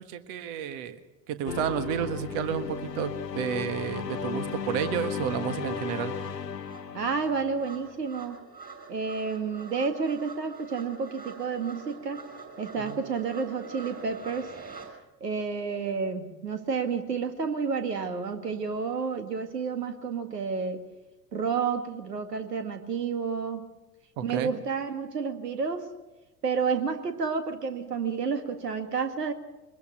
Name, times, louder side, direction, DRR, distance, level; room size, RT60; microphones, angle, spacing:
voice 1, 0.1-1.0 1.3-6.1 12.8-13.0 24.2-24.5, right 9 dB, 45° right, 11 dB, 1.6 m, -31 dB
sound 1, 1.5-7.9, left 7 dB, 80° left, 1.0 m, -35 dB
sound 2, 5.2-14.9, right 5 dB, 15° right, 6.1 m, -45 dB
voice 2, 6.9-8.5 8.9-12.2 12.6-14.5 15.2-20.8 21.3-23.7 24.2-25.9 26.4-29.3, right 5 dB, 75° right, 8 dB, 2.1 m, -30 dB
23.5 x 20.5 x 6.2 m, 1.1 s
figure-of-eight pair, 75°, 48 cm